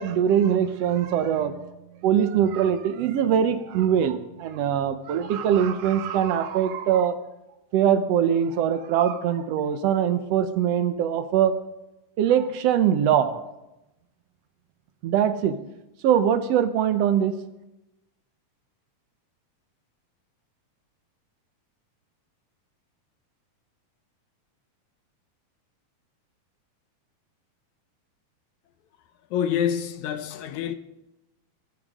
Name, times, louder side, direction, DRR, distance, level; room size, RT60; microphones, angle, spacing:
voice 1, 0.0-1.7 2.0-7.2 7.7-11.5 12.2-13.4 15.0-15.6 16.0-17.3, right 9 dB, 70° right, 10 dB, 1.6 m, -22 dB
voice 2, 29.3-30.7, left 9 dB, 75° left, 10 dB, 1.9 m, -26 dB
23.0 x 14.0 x 3.7 m, 0.94 s
omnidirectional pair, 3.8 m